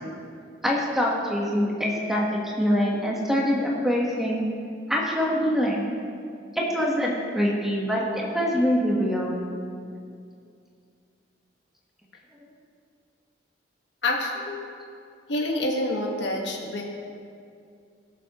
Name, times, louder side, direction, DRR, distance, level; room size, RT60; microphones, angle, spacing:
voice 1, 0.6-4.5 4.9-5.9 6.5-9.3, equal, ahead, -3 dB, 1.4 m, -24 dB
voice 2, 14.0-14.6 15.3-16.8, left 1 dB, 70° left, 0 dB, 1.6 m, -27 dB
21.0 x 7.1 x 3.1 m, 2.3 s
head